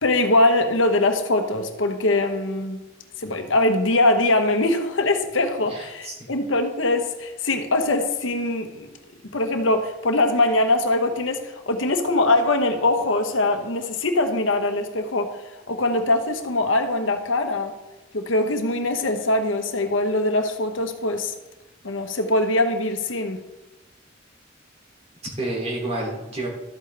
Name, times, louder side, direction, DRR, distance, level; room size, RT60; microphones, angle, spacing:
voice 1, 0.0-2.8 3.2-8.9 9.3-15.4 15.7-17.7 18.1-21.3 21.8-23.4, left 2 dB, 75° left, 6 dB, 1.1 m, -22 dB
voice 2, 5.7-6.2 25.2-26.5, right 2 dB, 35° right, -2 dB, 3.0 m, -29 dB
12.5 x 8.6 x 3.4 m, 1.1 s
head